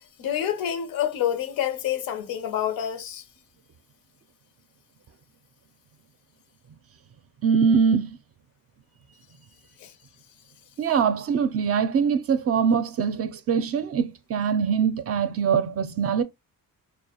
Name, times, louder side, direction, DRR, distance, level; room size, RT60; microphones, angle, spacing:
voice 1, 0.2-3.2 9.8-9.9, left 10 dB, 85° left, 0.5 m, -27 dB
voice 2, 7.4-8.2 10.8-16.2, right 6 dB, 45° right, 0.4 m, -23 dB
2.3 x 2.0 x 2.8 m
cardioid pair, 75°, 35 cm